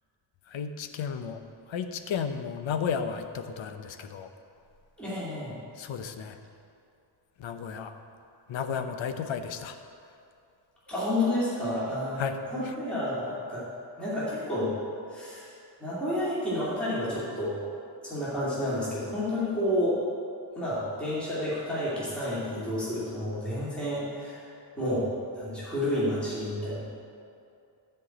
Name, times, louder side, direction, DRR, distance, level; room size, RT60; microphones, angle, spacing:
voice 1, 0.5-1.4 1.7-4.3 5.8-6.4 7.4-7.9 8.5-9.8 12.2-12.8, left 6 dB, 80° left, 8 dB, 0.8 m, -33 dB
voice 2, 5.0-5.6 10.9-13.6 14.0-14.8 15.1-15.5 15.8-17.6 18.0-20.0 20.5-24.5 24.8-26.8, left 1 dB, ahead, -10 dB, 2.5 m, -30 dB
13.0 x 4.6 x 7.7 m, 2.5 s
wide cardioid pair, 175°, 45 cm